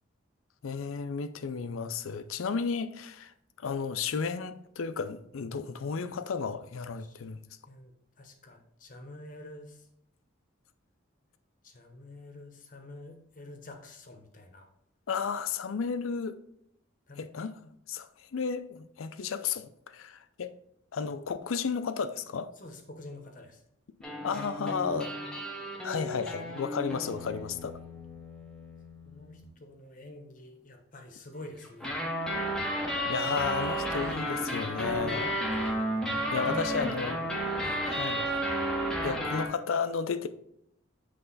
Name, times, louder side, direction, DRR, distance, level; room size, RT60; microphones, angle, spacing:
voice 1, 0.6-3.3 3.6-7.4 15.1-16.4 17.2-17.5 17.9-20.5 20.9-22.5 24.2-25.1 25.8-27.8 33.0-35.3 36.3-37.2 37.9-38.3 39.0-40.3, left 5 dB, 90° left, 0.5 m, -33 dB
voice 2, 8.2-9.9 11.6-14.7 17.1-17.5 22.6-23.6 29.0-31.9 34.9-36.9 37.6-37.8, left 1 dB, 40° left, 0.9 m, -47 dB
sound 1, 24.0-29.4 31.6-39.5, equal, 5° left, 0.8 m, -33 dB
7.7 x 3.3 x 4.0 m
head